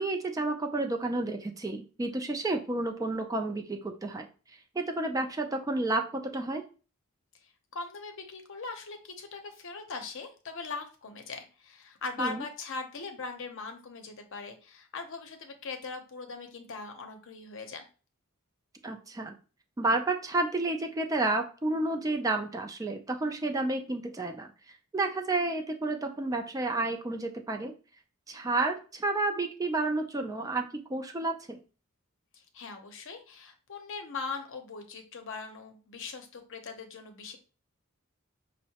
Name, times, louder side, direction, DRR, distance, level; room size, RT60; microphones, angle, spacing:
voice 1, 0.0-4.3 4.8-6.6 12.2-12.4 18.8-19.3 19.8-27.7 28.3-31.6, right 2 dB, 15° right, 4 dB, 0.4 m, -31 dB
voice 2, 7.7-17.8 32.3-37.4, left 4 dB, 60° left, 5 dB, 0.7 m, -40 dB
5.4 x 2.1 x 2.8 m, 0.35 s
head